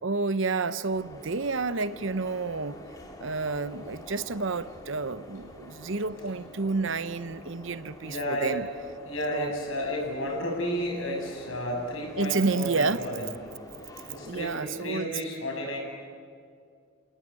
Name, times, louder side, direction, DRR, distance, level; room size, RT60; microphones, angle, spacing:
voice 1, 0.0-2.8 3.2-8.7 9.3-9.5 12.2-13.1 14.2-15.1, right 3 dB, 60° right, 0.8 m, -30 dB
sound 1, 0.9-14.6, left 1 dB, 15° left, 2.8 m, -47 dB
voice 2, 8.0-8.5 9.1-13.3 14.1-15.8, equal, 65° left, 7.6 m, -32 dB
29.0 x 18.5 x 9.6 m
head